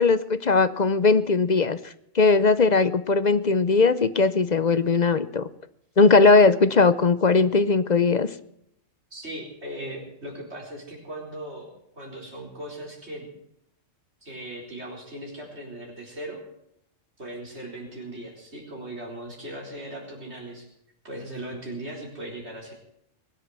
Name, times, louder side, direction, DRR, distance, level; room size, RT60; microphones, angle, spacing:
voice 1, 0.0-1.8 2.1-5.5 6.0-8.3, left 4 dB, 40° left, 14 dB, 0.7 m, -19 dB
voice 2, 9.1-11.7 11.9-13.3 14.2-16.4 17.2-20.7 21.0-22.7, right 1 dB, 55° right, -1 dB, 4.6 m, -38 dB
21.5 x 8.1 x 7.5 m, 0.73 s
omnidirectional pair, 1.3 m